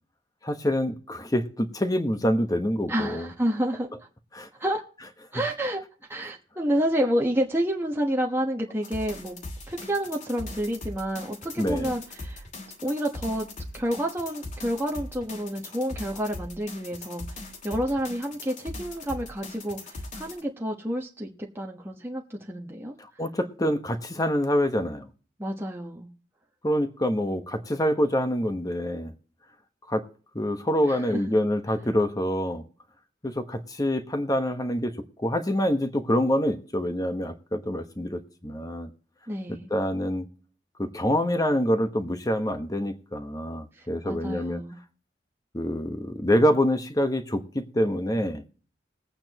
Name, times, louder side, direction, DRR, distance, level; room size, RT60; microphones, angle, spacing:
voice 1, 0.4-3.3 4.3-4.5 11.6-11.9 23.0-25.1 26.6-29.1 29.9-30.0 30.3-32.6 33.2-38.9 39.5-40.3 40.8-44.6 45.5-48.4, equal, 20° left, 1.3 m, -26 dB
voice 2, 2.9-3.9 4.6-4.8 5.3-5.8 6.1-9.4 9.7-12.4 12.8-13.5 13.7-22.9 25.4-26.1 30.9-31.2 39.3-39.7 43.8-44.8, equal, 15° right, 1.2 m, -29 dB
sound 1, 8.8-20.4, left 2 dB, 45° left, 2.4 m, -40 dB
21.0 x 8.7 x 3.0 m
head